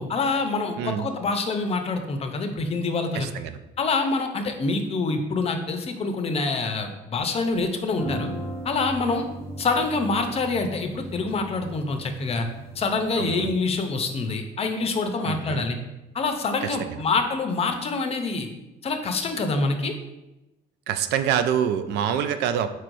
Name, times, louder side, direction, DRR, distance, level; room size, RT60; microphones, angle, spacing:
voice 1, 0.0-3.3 3.8-8.3 8.6-9.3 9.6-12.5 12.8-15.8 16.1-18.5 18.8-19.9, left 3 dB, 35° left, 6 dB, 0.6 m, -26 dB
voice 2, 0.8-1.1 3.1-3.6 13.2-13.5 15.2-15.7 16.6-17.0 20.9-22.7, right 9 dB, 80° right, 10 dB, 0.4 m, -26 dB
sound 1, 7.9-13.8, right 1 dB, 15° right, 0.7 m, -38 dB
4.6 x 4.4 x 2.6 m, 0.98 s
cardioid pair, 110°, 17 cm